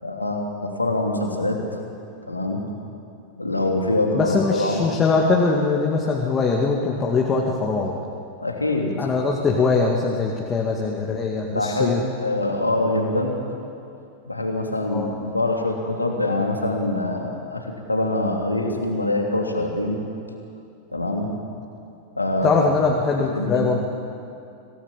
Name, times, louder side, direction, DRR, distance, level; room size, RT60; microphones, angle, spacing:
voice 1, 0.0-1.8 2.3-2.6 3.4-4.8 8.4-8.9 11.4-13.3 14.2-20.0 20.9-21.3 22.1-22.7 23.2-23.7, left 2 dB, 85° left, 1 dB, 2.9 m, -24 dB
voice 2, 4.1-7.9 9.0-12.0 14.9-15.1 22.4-23.8, left 4 dB, 20° left, -1 dB, 2.3 m, -22 dB
25.5 x 18.0 x 7.5 m, 2.6 s
figure-of-eight pair, 90°, 0 cm